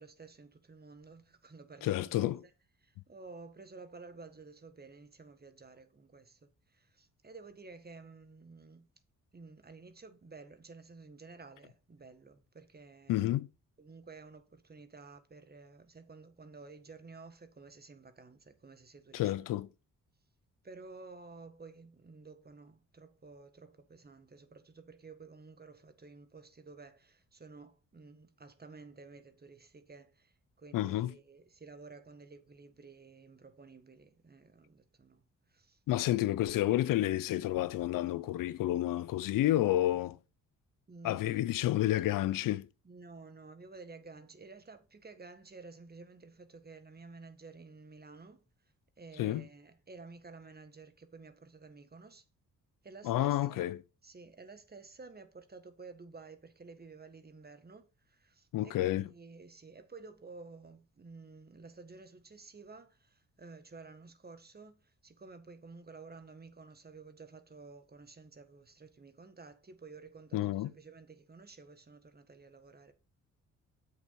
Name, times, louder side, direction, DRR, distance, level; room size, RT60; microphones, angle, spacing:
voice 1, 0.0-2.3 2.8-8.9 9.3-13.3 13.8-19.3 20.6-35.8 40.9-41.5 42.8-48.4 49.0-52.2 52.8-53.7 54.0-72.9, right 4 dB, 30° right, 1.6 m, -52 dB
voice 2, 1.8-2.4 13.1-13.5 19.1-19.7 30.7-31.1 35.9-40.2 41.0-42.7 49.2-49.5 53.0-53.8 58.5-59.1 70.3-70.7, left 14 dB, 85° left, 0.6 m, -30 dB
7.7 x 6.6 x 4.3 m
cardioid pair, 75°, 32 cm